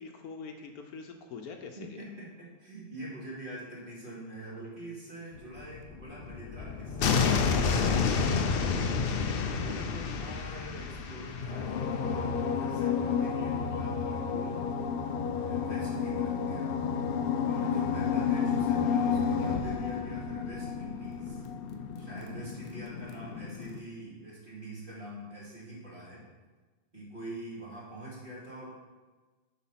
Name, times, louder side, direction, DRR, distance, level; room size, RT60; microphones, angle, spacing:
voice 1, 0.0-2.0, left 5 dB, 70° left, 4 dB, 1.1 m, -44 dB
voice 2, 1.8-8.9 9.6-14.6 15.3-16.7 17.4-21.4 22.0-26.2 26.9-28.7, right 1 dB, 30° right, -7 dB, 2.6 m, -45 dB
sound 1, 5.6-23.8, left 6 dB, 90° left, 0.5 m, -30 dB
8.2 x 4.0 x 5.7 m, 1.3 s
omnidirectional pair, 1.7 m